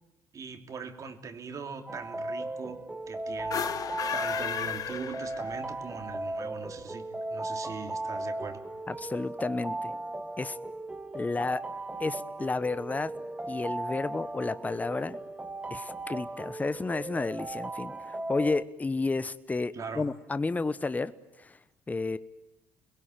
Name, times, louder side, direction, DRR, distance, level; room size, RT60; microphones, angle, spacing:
voice 1, 0.3-2.8 3.1-3.7 4.1-7.0 7.3-8.6 19.7-20.1, right 5 dB, 45° right, 5 dB, 3.0 m, -41 dB
sound 1, 1.9-18.6, right 2 dB, 15° right, 1.6 m, -37 dB
sound 2, 3.4-5.7, left 9 dB, 50° left, 1.1 m, -34 dB
voice 2, 8.9-9.9 10.4-10.6 11.1-11.6 12.0-13.1 13.5-15.2 15.7-21.1 21.4-21.6 21.9-22.2, left 3 dB, 20° left, 15 dB, 1.0 m, -31 dB
29.5 x 21.5 x 9.2 m, 1.0 s
hypercardioid pair, 55°, 8 cm